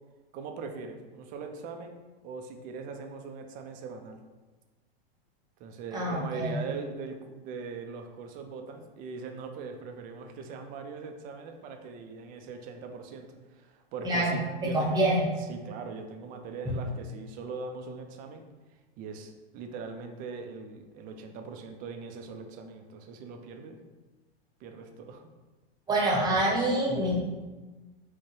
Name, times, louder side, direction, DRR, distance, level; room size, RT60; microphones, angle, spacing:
voice 1, 0.3-2.0 2.2-4.2 5.6-15.0 15.4-18.4 19.0-23.8 24.6-25.2, right 4 dB, 30° right, 4 dB, 0.4 m, -41 dB
voice 2, 5.9-6.6 14.0-14.4 14.6-15.3 16.7-16.8 25.9-27.3, right 1 dB, 15° right, -3 dB, 0.8 m, -26 dB
4.6 x 2.1 x 3.0 m, 1.2 s
hypercardioid pair, 125°, 30 cm